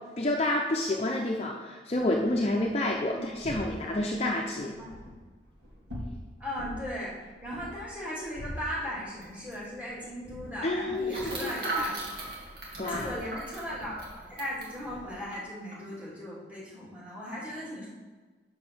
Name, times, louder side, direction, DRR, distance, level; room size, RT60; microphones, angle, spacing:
voice 1, 0.2-4.7 10.6-11.5 12.8-13.1, left 1 dB, 35° left, 0 dB, 0.6 m, -29 dB
sound 1, 1.9-15.2, equal, 90° right, 2.0 m, -46 dB
voice 2, 6.4-12.3 12.8-17.9, equal, 10° right, -7 dB, 2.7 m, -38 dB
sound 2, 9.2-9.3 9.5-9.7 11.1-14.7 15.3-15.4 15.7-16.0, right 2 dB, 60° right, 2.0 m, -37 dB
6.9 x 5.4 x 6.1 m, 1.3 s
head